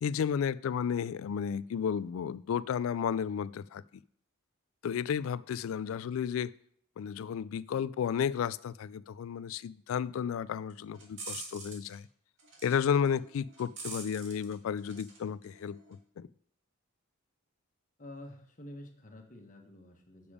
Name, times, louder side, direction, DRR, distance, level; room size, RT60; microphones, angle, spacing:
voice 1, 0.0-3.8 4.8-6.5 7.0-12.0 12.6-16.3, left 7 dB, 70° left, 0.3 m, -32 dB
sound 1, 10.7-12.0 12.4-12.8 13.1-15.2 15.4-15.9, right 3 dB, 60° right, 2.0 m, -45 dB
voice 2, 18.0-20.3, left 1 dB, 40° left, 1.4 m, -49 dB
6.9 x 6.9 x 5.0 m
head